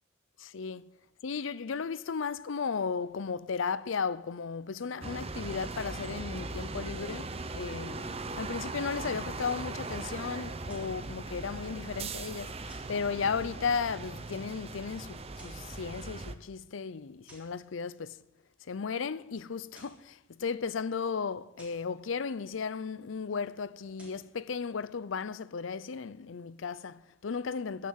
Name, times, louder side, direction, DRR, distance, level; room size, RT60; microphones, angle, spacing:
voice 1, 0.4-0.9 1.2-18.2 18.7-27.9, left 5 dB, 90° left, 0.5 m, -35 dB
sound 1, 5.0-16.3, right 3 dB, 30° right, 0.8 m, -39 dB
sound 2, 10.6-11.0 12.7-13.0 15.2-15.7 17.3-17.6 19.5-20.1 21.6-21.9 23.8-24.3, right 1 dB, 5° right, 3.5 m, -56 dB
15.5 x 6.8 x 8.6 m
head